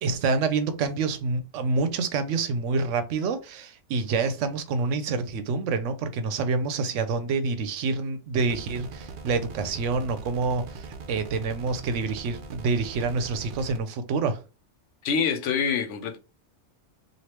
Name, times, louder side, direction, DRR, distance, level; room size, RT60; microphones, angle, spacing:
voice 1, 0.0-14.4, right 4 dB, 90° right, 0.9 m, -27 dB
sound 1, 8.5-13.8, right 4 dB, 60° right, 0.5 m, -41 dB
voice 2, 15.0-16.2, left 6 dB, 80° left, 1.0 m, -25 dB
3.2 x 2.6 x 2.9 m
omnidirectional pair, 1.2 m